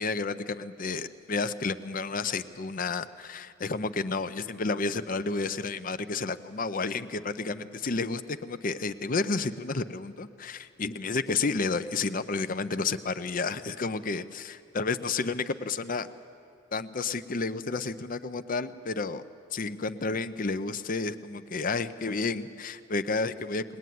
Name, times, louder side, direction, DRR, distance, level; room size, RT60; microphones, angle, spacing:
voice 1, 0.0-16.1 16.7-19.2 19.5-23.8, left 4 dB, 45° left, 11 dB, 0.7 m, -31 dB
20.5 x 20.0 x 9.4 m, 2.5 s
head